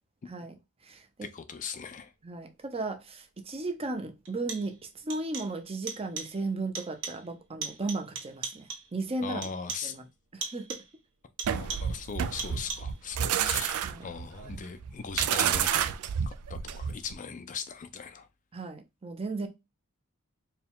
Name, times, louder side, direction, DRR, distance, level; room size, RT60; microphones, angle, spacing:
voice 1, 0.3-0.6 0.8-1.3 2.2-9.4 9.8-10.0 10.3-10.8 13.8-14.1 18.5-19.5, right 2 dB, 25° right, 0.6 m, -35 dB
voice 2, 1.2-2.1 9.2-10.0 11.5-15.8 16.2-18.3, left 6 dB, 35° left, 0.4 m, -39 dB
sound 1, 3.2-3.3 4.2-4.8 5.1-5.6 5.9-6.4 6.7-7.3 7.6-9.0 9.4-10.0 10.4-11.0 11.4-12.0 12.4-13.0, right 5 dB, 60° right, 1.1 m, -40 dB
sound 2, 11.4-17.1, right 8 dB, 80° right, 0.4 m, -30 dB
4.5 x 2.3 x 3.5 m
head